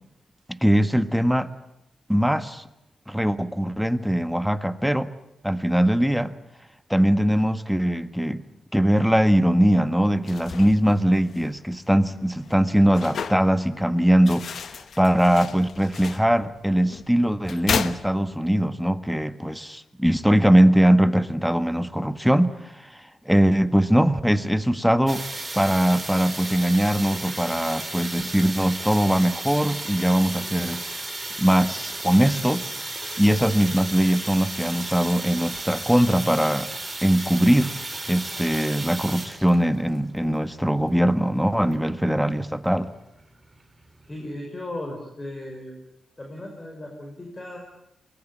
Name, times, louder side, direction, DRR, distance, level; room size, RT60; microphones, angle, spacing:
voice 1, 0.5-1.5 2.1-2.6 3.1-5.1 5.4-6.3 6.9-8.4 8.7-22.7 23.2-25.2 25.6-30.9 31.4-32.7 33.2-36.7 37.0-37.8 38.1-42.9, equal, ahead, 11 dB, 1.4 m, -21 dB
sound 1, 10.1-18.7, left 6 dB, 65° left, 1.2 m, -35 dB
sound 2, 25.1-44.3, right 2 dB, 20° right, 5.0 m, -35 dB
voice 2, 44.1-45.7 46.2-47.6, left 1 dB, 25° left, 1 dB, 5.8 m, -36 dB
23.5 x 20.0 x 9.2 m, 0.85 s
cardioid pair, 65°, 0 cm